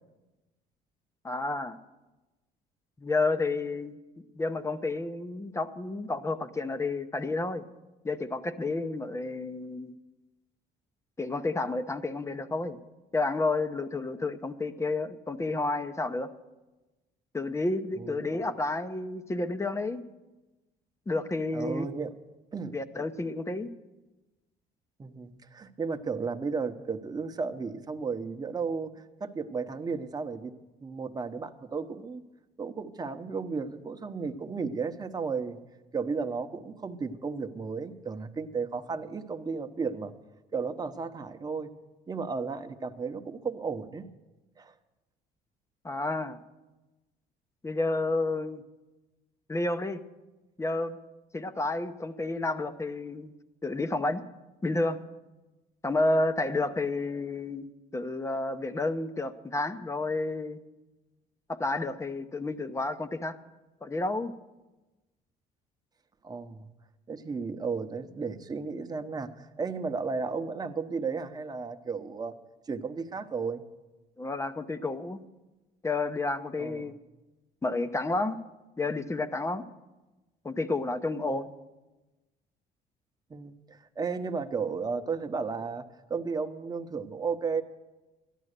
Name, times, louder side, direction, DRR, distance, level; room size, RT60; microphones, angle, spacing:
voice 1, 1.2-1.8 3.0-4.0 4.3-7.7 8.0-9.9 11.2-12.8 13.1-16.3 17.3-20.0 21.1-21.9 22.7-23.7 45.8-46.4 47.6-48.6 49.5-50.0 50.6-51.0 51.3-53.3 53.6-54.2 54.6-55.0 55.8-60.6 61.5-63.4 63.8-64.3 74.2-75.2 75.8-77.0 77.6-78.4 78.8-79.6 80.4-81.5, left 2 dB, 15° left, 11 dB, 0.7 m, -30 dB
voice 2, 21.5-22.1 22.5-22.8 25.0-30.5 30.8-32.2 32.6-35.6 35.9-40.1 40.5-41.7 42.1-44.1 44.6-44.7 66.2-66.7 67.1-72.3 72.7-73.6 76.6-76.9 81.1-81.5 83.3-87.6, right 5 dB, 25° right, 7 dB, 1.0 m, -34 dB
13.5 x 11.0 x 6.7 m, 1.1 s
cardioid pair, 110°, 17 cm